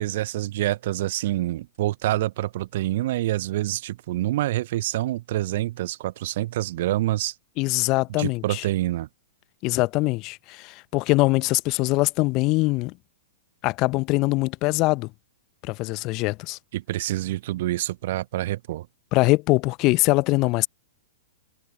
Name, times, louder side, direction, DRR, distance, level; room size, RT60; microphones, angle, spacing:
voice 1, 0.0-7.3 8.1-9.1 16.7-18.9, right 15 dB, 50° right, 0.7 m, -27 dB
voice 2, 7.6-8.7 9.6-12.9 13.6-15.1 15.6-16.6 19.1-20.7, left 23 dB, 35° left, 1.0 m, -22 dB
figure-of-eight pair, 105°, 0 cm